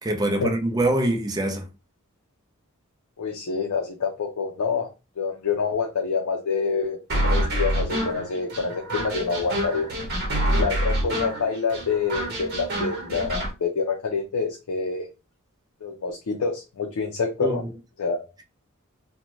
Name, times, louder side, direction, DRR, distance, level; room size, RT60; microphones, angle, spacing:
voice 1, 0.0-1.7 17.4-17.7, right 1 dB, 20° right, 0.5 m, -24 dB
voice 2, 3.2-4.9 5.2-9.9 10.6-15.1 15.8-17.6 18.0-18.2, left 5 dB, 75° left, 0.5 m, -27 dB
sound 1, 7.1-13.5, right 1 dB, 50° right, 1.0 m, -26 dB
2.5 x 2.2 x 3.1 m
head